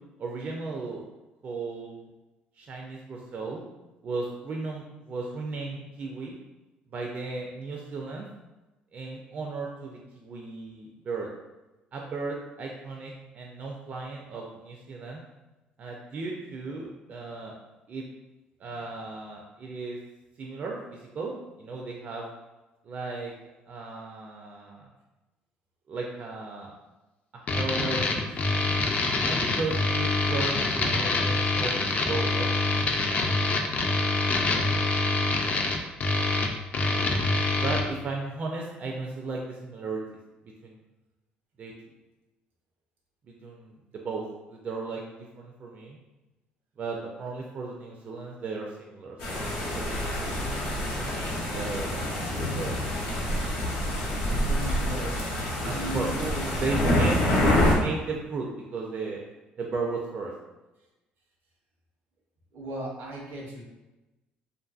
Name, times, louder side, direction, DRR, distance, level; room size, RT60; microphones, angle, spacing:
voice 1, 0.2-1.1 1.4-2.1 2.6-3.6 4.0-6.4 6.9-8.3 8.9-11.3 11.9-15.2 15.8-17.6 17.9-18.1 18.6-20.0 20.4-21.3 21.6-22.3 22.8-23.3 23.7-24.8 25.9-26.7 27.3-28.0 28.5-28.8 29.2-32.9 37.5-40.0 40.6-40.8 41.6-41.7 43.3-45.0 45.4-46.0 46.8-50.5 50.9-52.1 52.4-52.8 55.2-56.1 56.6-59.2 59.6-60.3, right 3 dB, 45° right, -1 dB, 0.4 m, -35 dB
sound 1, 27.5-37.8, left 3 dB, 45° left, 0.4 m, -25 dB
sound 2, 49.2-57.8, left 1 dB, 90° left, 0.7 m, -27 dB
voice 2, 54.6-55.2 55.6-56.6 57.0-57.3 62.5-63.6, right 2 dB, 80° right, -2 dB, 0.7 m, -36 dB
2.5 x 2.5 x 2.3 m, 1.1 s
cardioid pair, 95°, 4 cm